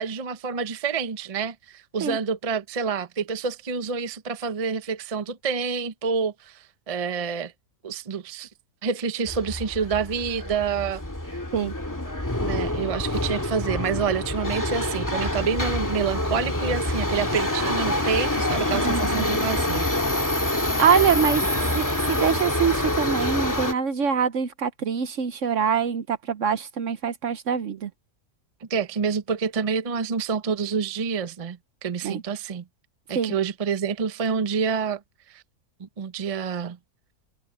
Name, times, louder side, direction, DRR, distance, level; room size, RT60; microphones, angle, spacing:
voice 1, 0.0-7.5 7.8-8.5 8.8-11.0 12.4-20.2 28.7-32.6 33.1-35.0 35.3-35.4 35.8-36.8, right 6 dB, 35° right, 0.6 m, -28 dB
Subway metro underground, 9.3-23.7, left 1 dB, 10° left, 1.9 m, -26 dB
voice 2, 18.7-19.4 20.8-21.4 21.7-27.9 32.0-32.2 33.1-33.3, right 7 dB, 55° right, 1.0 m, -24 dB
omnidirectional pair, 1.8 m